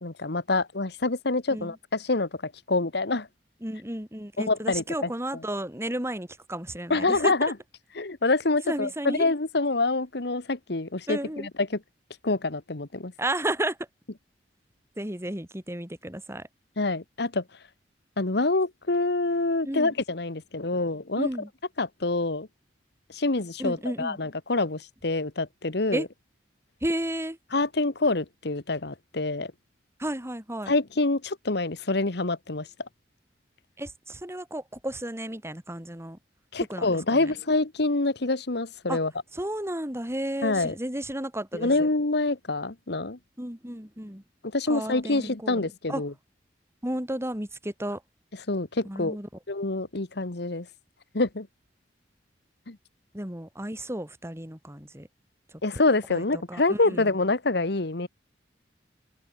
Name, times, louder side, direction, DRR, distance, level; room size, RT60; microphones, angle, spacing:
voice 1, 0.0-3.3 4.4-4.8 6.9-7.5 7.9-11.8 12.2-13.1 16.8-17.4 18.2-21.3 21.8-22.5 23.1-26.0 27.5-29.5 30.7-32.7 36.5-39.1 40.4-40.7 41.5-43.2 44.5-46.1 48.5-49.2 49.5-50.7 51.1-51.5 52.7-52.8 55.6-58.1, left 2 dB, 65° left, 1.5 m, -26 dB
voice 2, 3.6-7.3 8.6-9.3 11.1-11.5 13.2-13.8 15.0-16.5 19.6-19.9 21.2-21.5 23.6-24.2 25.9-26.0 26.8-27.4 30.0-30.7 33.8-36.2 36.6-37.3 38.9-39.0 39.3-41.7 43.4-44.2 44.7-46.0 46.8-48.0 48.8-49.3 53.1-55.1 56.1-57.1, right 1 dB, 15° right, 5.0 m, -33 dB
head